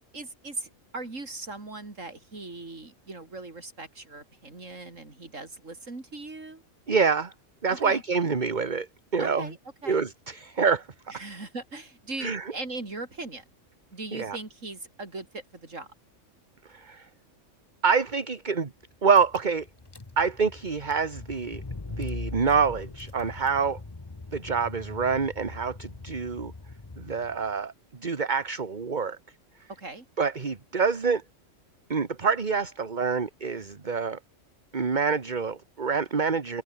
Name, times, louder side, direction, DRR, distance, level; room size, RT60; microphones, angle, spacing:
voice 1, 0.1-6.6 7.7-8.0 9.2-9.6 9.8-10.0 11.1-13.4 13.9-15.9 29.8-30.1, right 3 dB, 80° right, 4.3 m, -39 dB
voice 2, 6.9-7.3 7.6-9.5 9.9-10.9 12.2-12.5 14.1-14.4 16.7-17.1 17.8-18.7 19.0-19.7 20.2-21.6 21.9-23.8 24.3-26.5 27.0-27.7 28.0-29.2 30.2-31.2 31.9-34.2 34.7-36.6, right 5 dB, 35° right, 1.5 m, -26 dB
Car / Engine, 18.8-18.9 19.1-27.5, left 3 dB, 20° left, 1.1 m, -41 dB
omnidirectional pair, 1.3 m